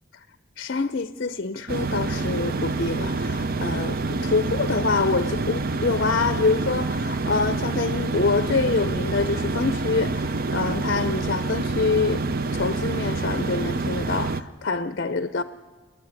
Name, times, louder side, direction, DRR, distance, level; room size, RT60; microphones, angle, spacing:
voice 1, 0.6-15.4, left 4 dB, 50° left, 0.6 m, -26 dB
sound 1, 1.7-14.4, right 3 dB, 45° right, 0.6 m, -27 dB
30.0 x 10.0 x 9.6 m
head